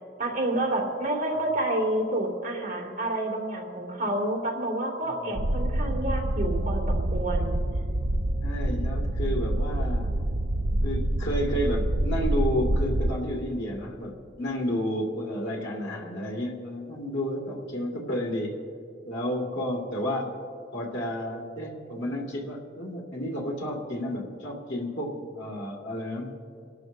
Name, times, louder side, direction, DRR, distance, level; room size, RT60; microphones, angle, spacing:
voice 1, 0.2-7.6, right 1 dB, 45° right, -2 dB, 2.5 m, -29 dB
sound 1, 5.3-13.1, right 1 dB, 60° right, 0.7 m, -27 dB
voice 2, 8.4-10.1 10.8-18.5 19.0-20.3 20.7-26.4, equal, 80° left, -1 dB, 2.1 m, -31 dB
27.5 x 13.0 x 2.7 m, 2.5 s
head